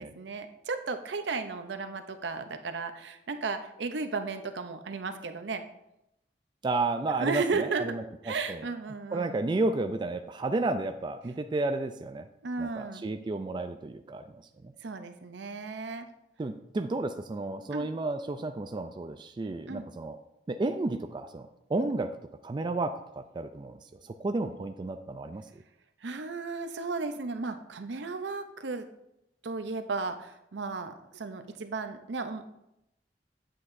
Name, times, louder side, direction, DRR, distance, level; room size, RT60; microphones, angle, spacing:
voice 1, 0.0-5.7 7.2-8.0 8.2-9.4 12.4-13.0 14.8-16.1 17.7-17.9 19.7-19.9 26.0-28.9 29.4-32.5, right 4 dB, 75° right, 8 dB, 0.6 m, -34 dB
voice 2, 6.6-8.6 9.1-12.2 12.6-14.4 16.4-20.2 20.5-22.1 22.4-23.8 24.0-25.4, right 2 dB, 25° right, 7 dB, 0.3 m, -32 dB
8.5 x 7.5 x 2.6 m, 0.85 s
head